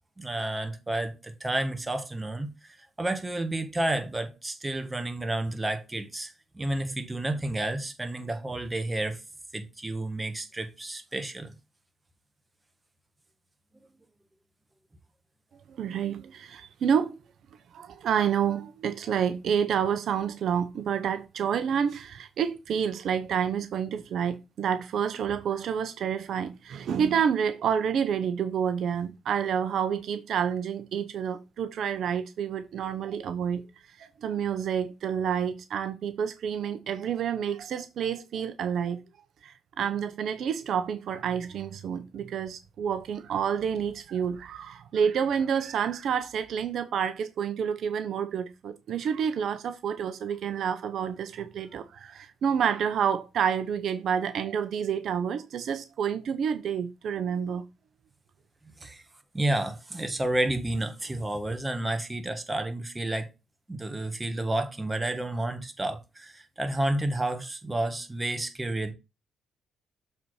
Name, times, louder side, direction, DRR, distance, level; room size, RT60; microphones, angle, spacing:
voice 1, 0.2-2.5 3.0-9.2 9.5-11.5 58.8-59.0 59.3-63.3 63.7-68.9, right 1 dB, 15° right, 1.5 m, -30 dB
voice 2, 15.7-17.2 17.7-33.6 34.0-39.0 39.4-57.6, right 7 dB, 65° right, 0.8 m, -29 dB
7.0 x 4.1 x 4.8 m
cardioid pair, 90°, 0 cm